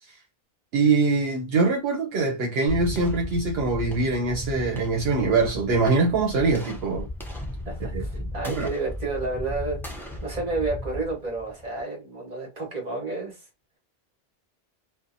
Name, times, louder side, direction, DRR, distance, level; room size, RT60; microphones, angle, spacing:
voice 1, 0.7-7.1 7.9-8.7, right 3 dB, 75° right, 0.8 m, -23 dB
sound 1, 2.7-11.8, left 1 dB, 5° left, 0.4 m, -35 dB
voice 2, 7.6-9.8 10.2-13.4, right 3 dB, 40° right, 1.2 m, -30 dB
2.6 x 2.1 x 2.5 m
omnidirectional pair, 1.0 m